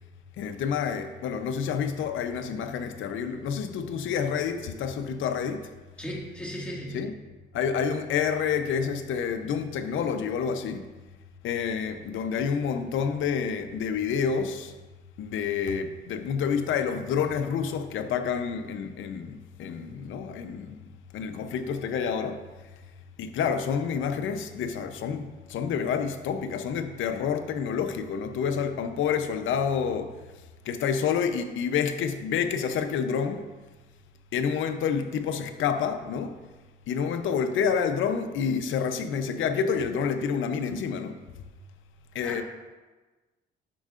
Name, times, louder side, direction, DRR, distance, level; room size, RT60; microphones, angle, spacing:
voice 1, 0.4-5.7 6.9-7.1 7.5-10.9 11.4-14.8 15.2-20.8 21.1-22.7 23.2-33.5 34.3-36.4 36.9-41.4 42.1-42.4, left 7 dB, 80° left, 0.7 m, -28 dB
voice 2, 6.0-7.0 42.2-42.4, equal, 5° left, 1.9 m, -36 dB
9.9 x 6.5 x 2.5 m
cardioid pair, 90°, 20 cm